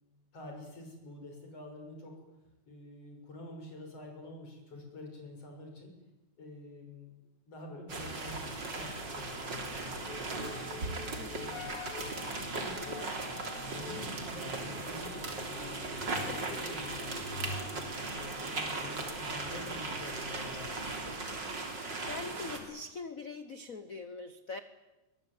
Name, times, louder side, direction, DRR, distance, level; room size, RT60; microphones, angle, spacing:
voice 1, 0.3-2.2 2.7-5.9 6.4-7.1 7.5-10.9 11.4-11.7 12.6-13.0 13.7-17.3 17.7-21.2, left 2 dB, 55° left, 2 dB, 7.3 m, -47 dB
sound 1, 7.9-22.6, right 3 dB, 35° right, 3.9 m, -38 dB
sound 2, 8.3-21.6, left 5 dB, 85° left, 3.3 m, -49 dB
voice 2, 21.5-24.6, left 3 dB, 70° left, 11 dB, 0.8 m, -43 dB
23.5 x 20.5 x 9.6 m, 1.0 s
omnidirectional pair, 3.3 m